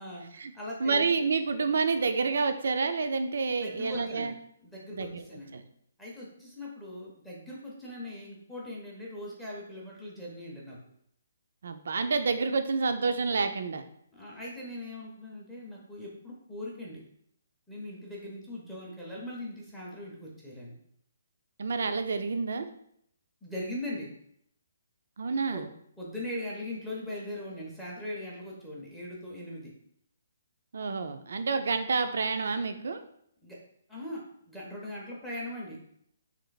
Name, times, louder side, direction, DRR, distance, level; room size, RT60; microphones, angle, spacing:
voice 1, 0.0-1.0 3.6-4.3 4.6-5.6 6.0-10.8 14.1-17.0 17.7-20.7 23.4-24.1 25.5-25.6 26.0-29.7 33.4-33.6 33.9-35.8, left 1 dB, ahead, -5 dB, 0.6 m, -40 dB
voice 2, 0.8-4.3 4.9-5.2 5.5-5.6 11.6-13.8 21.6-22.7 25.2-25.7 30.7-33.0, right 4 dB, 60° right, 8 dB, 0.4 m, -29 dB
3.2 x 3.0 x 3.9 m, 0.70 s
hypercardioid pair, 175°, 0 cm